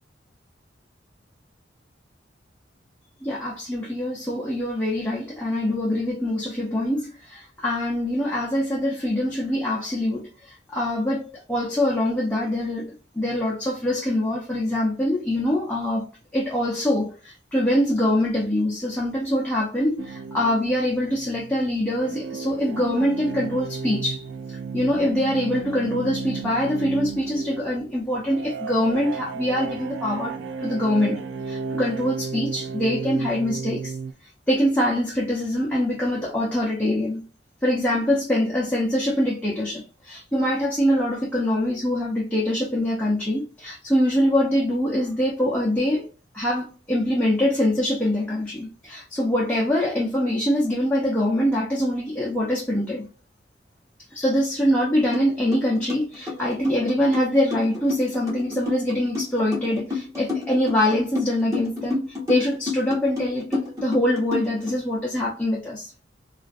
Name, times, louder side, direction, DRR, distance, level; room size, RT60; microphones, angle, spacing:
voice 1, 3.2-16.0 16.3-34.0 34.2-37.2 37.6-46.1 46.3-53.1 54.1-66.0, left 1 dB, 5° left, 0.5 m, -24 dB
sound 1, 20.0-34.1, right 5 dB, 75° right, 0.3 m, -34 dB
sound 2, 55.1-55.3 55.5-64.7, left 4 dB, 15° right, 1.0 m, -30 dB
2.4 x 2.3 x 2.4 m
head